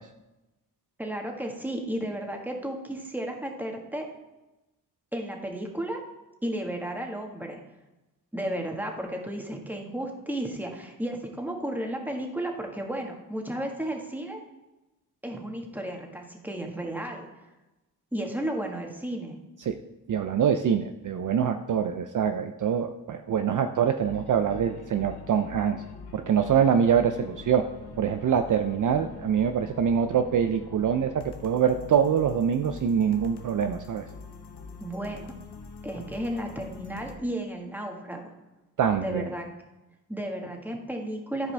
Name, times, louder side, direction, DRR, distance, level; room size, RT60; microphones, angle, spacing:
voice 1, 1.0-4.1 5.1-6.0 6.4-7.6 8.3-14.4 15.2-17.3 18.1-19.4 34.8-35.3 35.8-38.3 39.0-39.5 40.1-41.5, right 1 dB, 5° right, 1 dB, 1.6 m, -33 dB
voice 2, 20.1-25.8 26.1-27.7 28.0-34.0 38.8-39.3, right 8 dB, 55° right, 8 dB, 0.5 m, -24 dB
sound 1, 24.0-37.2, left 4 dB, 80° left, 1.0 m, -45 dB
13.0 x 4.9 x 3.4 m, 1.0 s
cardioid pair, 65°, 39 cm